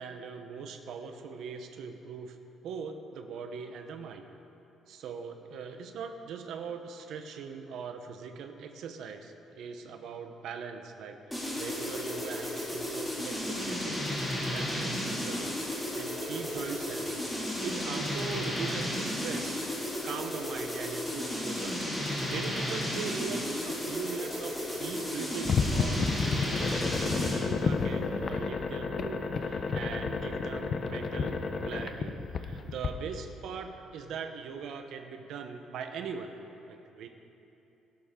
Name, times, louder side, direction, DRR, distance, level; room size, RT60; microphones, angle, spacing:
voice 1, 0.0-2.4 2.6-4.2 4.9-15.6 15.9-19.6 20.0-21.9 22.3-31.4 31.6-36.3 36.7-37.1, right 6 dB, 65° right, 6 dB, 0.9 m, -41 dB
sound 1, 11.3-27.5, left 1 dB, 5° left, 2.5 m, -33 dB
sound 2, 25.4-32.9, left 4 dB, 35° left, 0.6 m, -31 dB
17.0 x 12.0 x 3.8 m, 2.8 s
cardioid pair, 160°, 0 cm